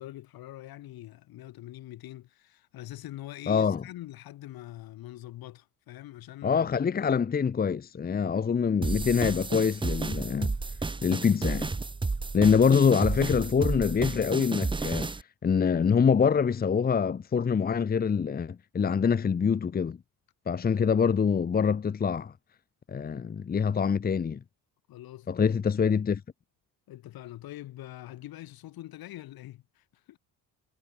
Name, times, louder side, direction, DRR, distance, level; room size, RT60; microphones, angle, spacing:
voice 1, 0.0-7.3 20.8-21.0 24.9-25.4 26.9-30.2, left 15 dB, 70° left, 6.0 m, -44 dB
voice 2, 3.5-3.8 6.4-10.5 11.0-11.7 12.3-15.1 15.4-20.0 20.5-22.3 22.9-24.4 25.3-26.2, left 6 dB, 25° left, 1.1 m, -25 dB
sound 1, 8.8-15.2, right 3 dB, 15° right, 1.1 m, -32 dB
cardioid pair, 135°, 37 cm